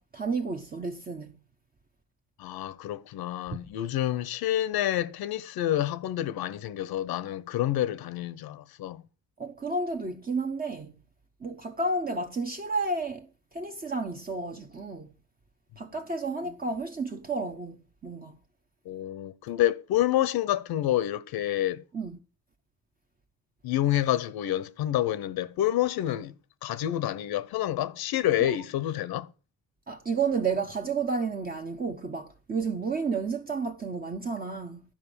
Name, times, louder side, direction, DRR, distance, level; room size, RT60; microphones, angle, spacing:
voice 1, 0.0-1.4 9.4-10.9 11.4-13.3 13.5-15.1 15.8-18.4 21.9-22.2 29.9-34.8, right 4 dB, 25° right, 0.8 m, -31 dB
voice 2, 2.4-9.0 15.8-15.9 18.8-21.8 23.6-26.3 26.6-29.3, left 12 dB, 80° left, 0.9 m, -28 dB
12.5 x 5.1 x 7.0 m
cardioid pair, 130°, 37 cm